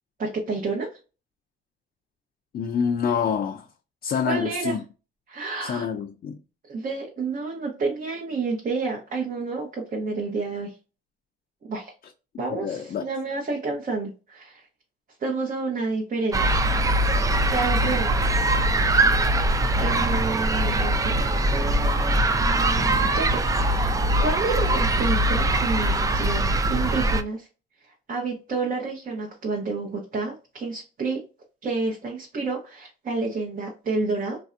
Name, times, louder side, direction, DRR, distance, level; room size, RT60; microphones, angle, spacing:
voice 1, 0.2-0.9 4.2-4.8 5.3-5.9 6.7-10.7 11.7-11.9 12.4-14.6 15.2-16.7 17.5-18.3 19.8-27.5 27.8-31.2 31.6-34.4, right 3 dB, 45° right, 0.8 m, -30 dB
voice 2, 2.5-3.7 4.0-4.8 5.6-6.4 12.3-13.0, left 7 dB, 50° left, 0.4 m, -27 dB
sound 1, 16.3-27.2, right 1 dB, 15° right, 0.3 m, -22 dB
3.2 x 2.6 x 2.5 m
cardioid pair, 90°, 20 cm